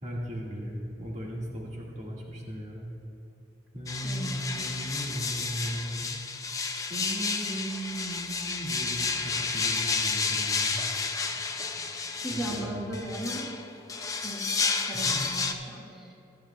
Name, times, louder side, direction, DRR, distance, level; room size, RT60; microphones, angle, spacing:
voice 1, 0.0-2.9 3.7-6.1 6.9-10.8 12.3-12.9 14.9-15.2, equal, 40° right, -4 dB, 1.7 m, -37 dB
sound 1, 3.9-15.5, left 4 dB, 20° left, 0.5 m, -31 dB
voice 2, 4.0-4.4 12.2-13.5 14.2-14.4 14.7-16.1, right 1 dB, ahead, -6 dB, 1.8 m, -37 dB
16.0 x 12.0 x 2.2 m, 2.7 s
head